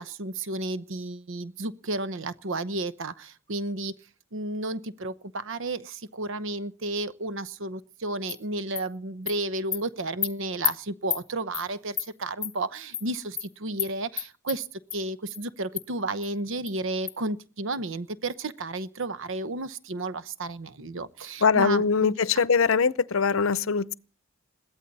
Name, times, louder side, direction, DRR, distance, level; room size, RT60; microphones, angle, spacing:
voice 1, 0.0-3.9 4.3-22.1, right 2 dB, 65° right, 0.9 m, -32 dB
Animal, 8.3-8.4 8.8-8.9 9.3-9.4 9.7-9.8 10.2-10.3 10.6-10.7 11.1-11.2 11.5-11.7 12.0-12.1 12.4-12.5 12.9-13.1 13.4-13.5 13.8-13.9 14.2-14.6 14.9-15.0 15.3-15.4 15.8-15.9 16.2-16.3 16.7-16.8 17.1-17.2, left 9 dB, 20° left, 1.3 m, -29 dB
voice 2, 21.4-23.9, left 5 dB, 70° left, 0.7 m, -22 dB
21.0 x 15.5 x 4.1 m
head